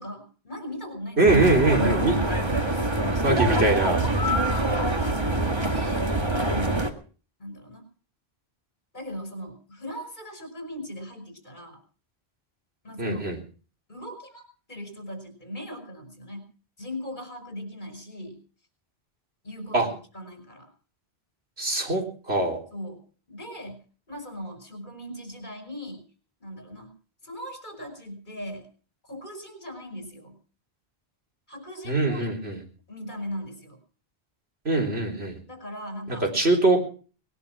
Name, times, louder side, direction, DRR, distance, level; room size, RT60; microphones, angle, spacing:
voice 1, 0.0-1.3 1.6-2.9 4.3-4.5 5.6-6.0 6.4-7.0 7.4-7.8 8.9-11.8 12.8-13.3 13.9-16.5 16.8-18.4 19.4-20.7 22.7-23.0 23.3-23.8 24.1-26.0 26.4-26.9 27.2-28.7 29.0-30.4 31.5-32.4 32.9-33.8 35.5-36.5, left 1 dB, 45° left, 5 dB, 5.6 m, -38 dB
voice 2, 1.2-2.1 3.2-4.0 13.0-13.4 19.7-19.9 21.6-22.6 31.8-32.6 34.6-35.4 36.1-36.8, right 2 dB, 80° right, 1 dB, 4.1 m, -22 dB
sound 1, 1.3-6.9, right 1 dB, 25° right, 1.9 m, -25 dB
20.5 x 11.0 x 6.1 m, 0.41 s
omnidirectional pair, 1.1 m